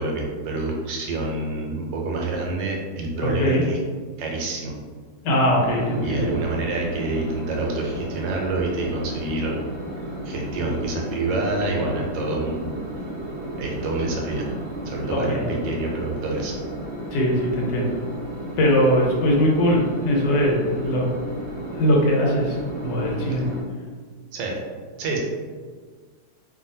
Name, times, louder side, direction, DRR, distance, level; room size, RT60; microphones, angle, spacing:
voice 1, 0.0-3.8 4.2-4.8 6.0-9.6 10.2-12.7 13.6-14.5 14.8-16.5 23.3-23.4 24.3-24.6 25.0-25.2, right 2 dB, 90° right, -1 dB, 1.3 m, -27 dB
voice 2, 3.2-3.6 5.2-6.3 15.1-15.5 17.1-18.0 18.6-21.1 21.7-23.5, equal, 80° left, -2 dB, 1.3 m, -21 dB
sound 1, 5.6-23.6, equal, 45° right, 0.9 m, -33 dB
2.8 x 2.7 x 2.6 m, 1.5 s
omnidirectional pair, 1.9 m